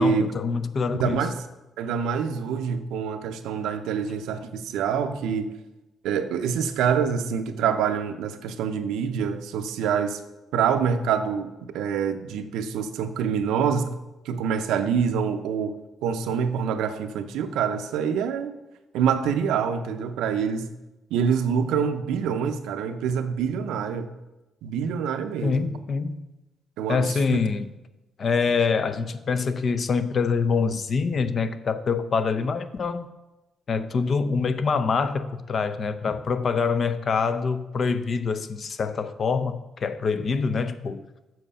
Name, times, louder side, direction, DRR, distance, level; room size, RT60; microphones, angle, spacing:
voice 1, 0.0-1.3 25.4-26.2 26.9-27.7 28.2-33.1 33.7-41.0, left 5 dB, 50° left, 11 dB, 0.6 m, -25 dB
voice 2, 1.0-1.3 1.8-5.5 6.0-10.2 10.5-13.9 14.2-15.8 16.0-18.6 18.9-20.7 21.1-24.1 24.6-25.7 26.8-27.2, right 7 dB, 90° right, 8 dB, 0.6 m, -26 dB
7.7 x 6.2 x 5.5 m, 1.0 s
cardioid pair, 90°, 0 cm